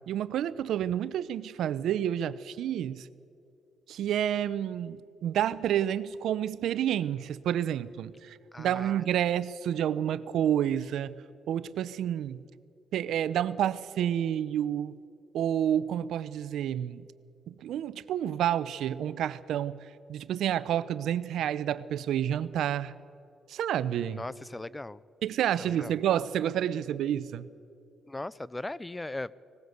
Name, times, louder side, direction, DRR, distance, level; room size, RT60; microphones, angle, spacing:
voice 1, 0.1-3.1 3.9-11.1 11.5-12.4 12.9-15.0 15.3-17.0 17.5-19.8 20.1-22.9 23.5-24.2 25.2-27.5, right 10 dB, 75° right, 16 dB, 0.7 m, -29 dB
voice 2, 8.5-8.9 24.1-25.0 25.6-25.9 28.1-29.3, left 2 dB, 15° left, 20 dB, 0.5 m, -38 dB
19.5 x 18.5 x 8.0 m, 2.4 s
cardioid pair, 90°, 0 cm